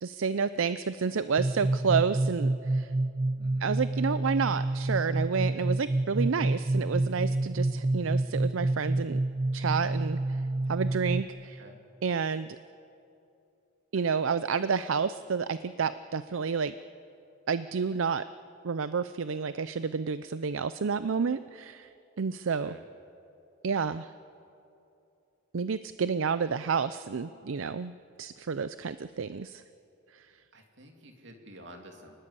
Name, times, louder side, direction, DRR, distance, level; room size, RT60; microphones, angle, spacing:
voice 1, 0.0-2.9 3.6-9.2 9.5-10.2 10.7-11.6 12.0-12.6 13.9-16.7 17.5-18.2 18.6-21.9 22.2-22.7 23.6-24.1 25.5-27.9 28.2-29.6, right 5 dB, 80° right, 14 dB, 0.5 m, -30 dB
sound 1, 1.4-11.2, right 2 dB, 25° right, 0.7 m, -28 dB
voice 2, 3.4-3.7 11.6-11.8 22.5-22.8 26.4-26.8 30.5-32.2, right 1 dB, 65° right, 3 dB, 2.9 m, -50 dB
28.0 x 20.0 x 8.3 m, 2.7 s
head